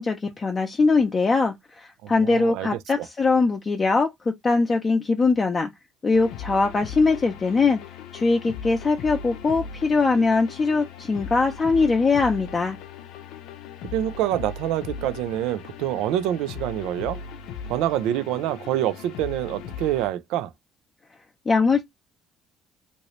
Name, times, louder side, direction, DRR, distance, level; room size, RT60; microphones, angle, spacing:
voice 1, 0.0-5.7 6.0-7.8 8.1-12.8 21.5-21.8, left 4 dB, 30° left, 0.6 m, -21 dB
voice 2, 2.0-2.7 3.0-3.1 13.8-17.2 17.7-20.5, right 12 dB, 85° right, 0.4 m, -26 dB
sound 1, 6.1-20.1, left 6 dB, 85° left, 0.5 m, -38 dB
2.8 x 2.6 x 3.1 m
cardioid pair, 95°, 0 cm